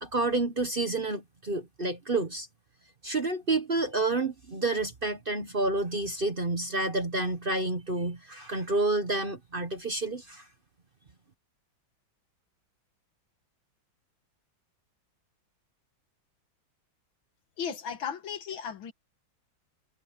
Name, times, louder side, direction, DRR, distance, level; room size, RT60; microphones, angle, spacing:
voice 1, 0.0-2.5 3.0-10.4, right 2 dB, 30° right, 1.2 m, -29 dB
voice 2, 17.6-18.9, left 7 dB, 80° left, 2.2 m, -35 dB
omnidirectional pair, 2.1 m